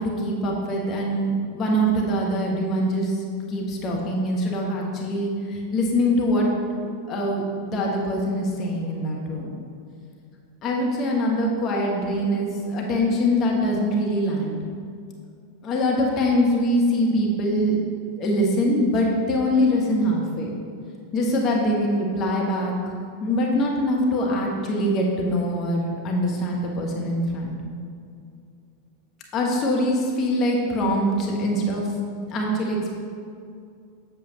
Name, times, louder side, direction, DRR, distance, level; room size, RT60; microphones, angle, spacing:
voice 1, 0.0-3.2 3.5-6.5 6.8-9.5 10.6-14.6 15.6-17.8 18.2-20.5 21.1-22.7 23.2-27.5 29.3-31.8 32.3-32.9, equal, 30° left, -1 dB, 1.1 m, -23 dB
7.6 x 6.9 x 2.9 m, 2.4 s
figure-of-eight pair, 90°, 0 cm